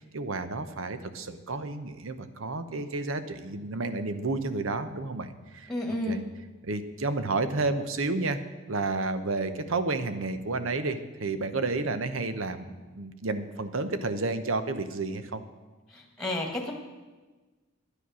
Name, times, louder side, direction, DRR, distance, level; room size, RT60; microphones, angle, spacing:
voice 1, 0.1-5.7 6.1-6.2 6.6-8.4 8.7-12.7 12.9-15.4, right 3 dB, 75° right, 10 dB, 0.9 m, -31 dB
voice 2, 5.7-6.2 15.9-16.7, left 1 dB, 5° left, 1 dB, 1.5 m, -31 dB
10.0 x 9.9 x 6.2 m, 1.3 s
head